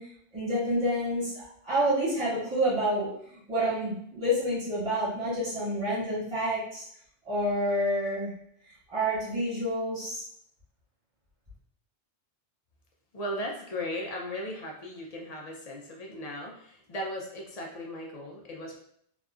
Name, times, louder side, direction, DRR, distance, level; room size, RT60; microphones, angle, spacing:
voice 1, 0.0-6.8 7.2-8.3 8.9-10.2, equal, 30° right, -10 dB, 1.5 m, -28 dB
voice 2, 13.1-18.8, left 1 dB, 60° left, 0 dB, 0.4 m, -37 dB
2.7 x 2.3 x 2.3 m, 0.68 s
omnidirectional pair, 1.2 m